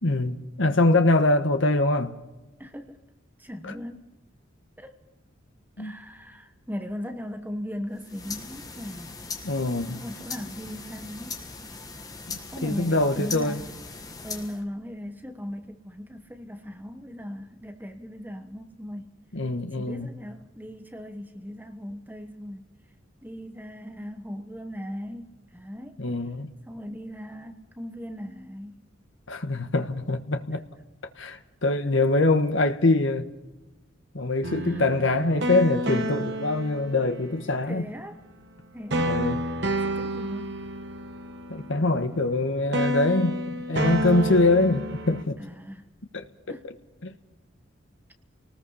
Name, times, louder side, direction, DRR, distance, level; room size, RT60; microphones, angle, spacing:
voice 1, 0.0-2.1 3.6-3.7 5.8-6.0 9.4-10.0 12.3-13.6 19.3-20.1 26.0-26.5 29.3-30.6 31.2-33.2 34.1-37.9 39.1-39.4 41.5-45.4 46.1-46.7 47.0-47.1, left 2 dB, 75° left, 1.4 m, -24 dB
voice 2, 2.6-3.0 3.4-4.1 4.8-5.0 5.8-9.2 9.9-11.5 12.5-13.7 14.2-19.1 19.8-22.7 23.2-26.0 26.6-28.8 34.7-34.8 37.7-38.2 38.7-39.1 39.8-40.5 45.4-45.8 46.5-46.7, equal, 10° right, 1.1 m, -38 dB
sound 1, 7.9-14.7, left 4 dB, 20° left, 1.6 m, -39 dB
sound 2, 34.4-37.6 38.9-42.4 42.7-45.2, right 1 dB, 55° right, 1.4 m, -30 dB
28.5 x 19.5 x 5.6 m
head